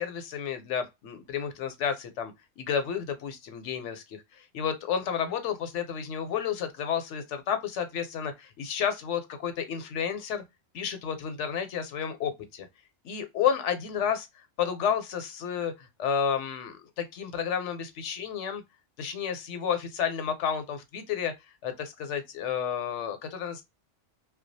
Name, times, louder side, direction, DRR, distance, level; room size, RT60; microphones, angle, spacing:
voice 1, 0.0-10.4 10.7-12.7 13.0-14.3 14.6-18.6 19.0-21.3 21.6-23.6, left 8 dB, 80° left, 0.9 m, -31 dB
2.3 x 2.2 x 2.5 m
omnidirectional pair, 1.2 m